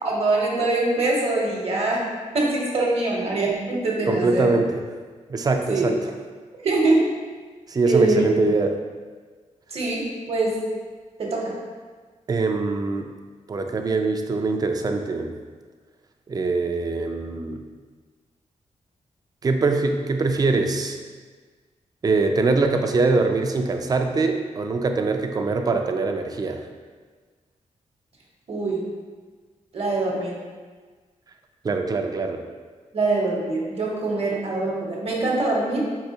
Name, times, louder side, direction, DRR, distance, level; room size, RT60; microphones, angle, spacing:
voice 1, 0.0-2.0 2.3-4.5 5.7-5.9 6.6-7.1 7.9-8.2 9.7-10.6 11.2-11.5 28.5-28.8 29.7-30.4 32.9-35.8, right 2 dB, 50° right, -2 dB, 0.9 m, -23 dB
voice 2, 4.1-4.8 5.3-6.0 7.7-8.7 12.3-13.1 13.5-15.3 16.3-17.6 19.4-21.0 22.0-26.6 31.6-32.4, right 3 dB, 30° right, 5 dB, 0.3 m, -23 dB
4.6 x 3.3 x 2.8 m, 1.5 s
wide cardioid pair, 140°, 13 cm